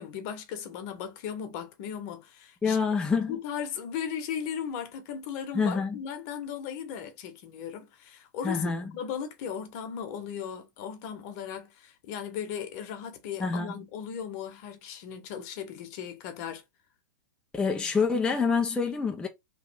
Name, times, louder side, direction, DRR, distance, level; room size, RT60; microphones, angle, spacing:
voice 1, 0.0-2.8 3.3-16.6, left 8 dB, 50° left, 0.9 m, -37 dB
voice 2, 2.6-3.3 5.5-6.0 8.4-8.8 13.4-13.8 17.5-19.3, left 5 dB, 10° left, 0.4 m, -26 dB
3.0 x 2.3 x 3.4 m
hypercardioid pair, 115°, 11 cm